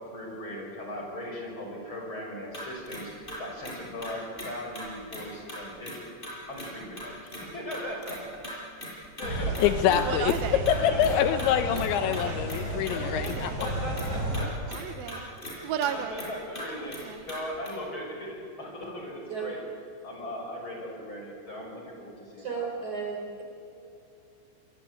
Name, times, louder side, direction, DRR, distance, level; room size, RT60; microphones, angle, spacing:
voice 1, 0.1-6.1 6.5-8.2 8.9-9.7 10.7-11.4 11.7-12.1 12.7-13.0 13.4-14.5 15.9-17.0 17.2-19.6 20.0-22.7, left 1 dB, 25° left, 0 dB, 6.4 m, -38 dB
sound 1, 2.5-4.1 4.4-4.5 4.8-4.9 5.1-5.2 5.5-5.6 5.9-6.0 6.2-6.7 6.9-7.4 7.7-8.2 8.4-8.5 8.8-9.3 9.5-9.6 9.9-10.0 10.3-10.4 10.7-10.8 11.0-11.5 11.7-11.9 12.1-13.0 13.2-13.3 13.6-14.5 14.7-14.8 15.1-15.5 15.8-15.9 16.2-16.3 16.6-16.7 16.9-17.0 17.3-17.4 17.7-17.8, equal, 10° left, 7.2 m, -39 dB
sound 2, 9.2-14.4, right 1 dB, 20° right, 5.6 m, -33 dB
voice 2, 9.3-13.5, left 10 dB, 80° left, 10 dB, 3.0 m, -26 dB
Human voice, 9.9-10.7 11.6-12.5 13.0-13.6 14.3-15.3 15.6-16.2 16.6-17.3, right 10 dB, 70° right, 2.4 m, -35 dB
voice 3, 22.4-23.4, right 5 dB, 40° right, 1 dB, 5.1 m, -34 dB
27.0 x 21.5 x 8.9 m, 2.7 s
omnidirectional pair, 5.5 m